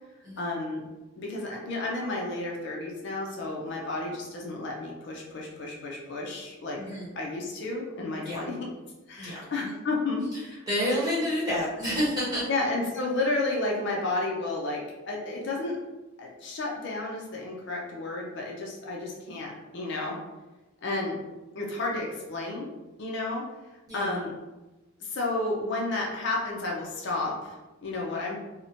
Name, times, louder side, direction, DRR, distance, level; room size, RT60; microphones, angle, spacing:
voice 1, 0.4-0.8 1.2-6.8 7.2-8.5 9.1-10.6 12.5-15.8 16.2-20.2 20.8-21.2 21.5-22.7 23.0-23.4 23.9-24.3 25.0-28.4, left 2 dB, 55° left, -2 dB, 0.4 m, -31 dB
voice 2, 6.8-7.1 8.2-8.4 9.2-9.7 10.3-10.4 10.7-12.5 23.9-24.2, equal, 20° right, -9 dB, 1.0 m, -29 dB
2.8 x 2.1 x 2.6 m, 1.1 s
head